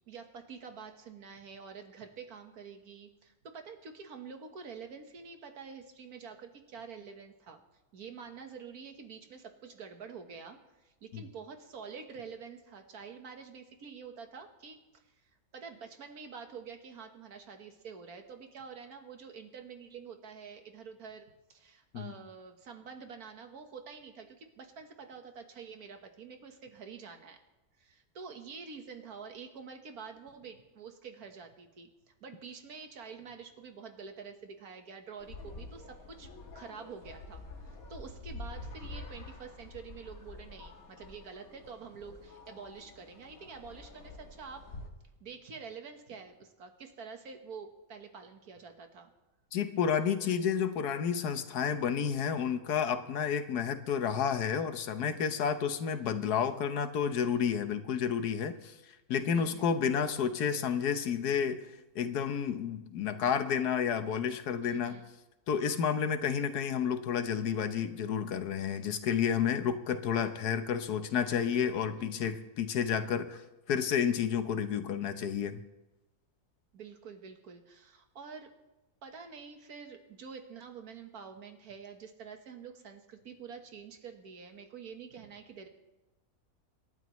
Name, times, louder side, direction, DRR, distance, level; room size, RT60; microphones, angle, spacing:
voice 1, 0.0-7.6 7.9-15.0 15.5-27.4 27.8-31.9 32.2-36.3 36.5-44.7 45.2-49.1 59.3-59.8 64.6-65.0 72.0-72.3 76.7-78.5 79.0-85.7, right 5 dB, 75° right, 6 dB, 1.8 m, -47 dB
sound 1, 35.2-44.9, left 2 dB, 65° left, 1.9 m, -47 dB
voice 2, 49.5-58.7 59.1-61.6 61.9-65.0 65.5-73.4 73.7-75.6, left 7 dB, 90° left, 10 dB, 1.5 m, -30 dB
27.0 x 11.5 x 3.1 m, 1.0 s
omnidirectional pair, 1.6 m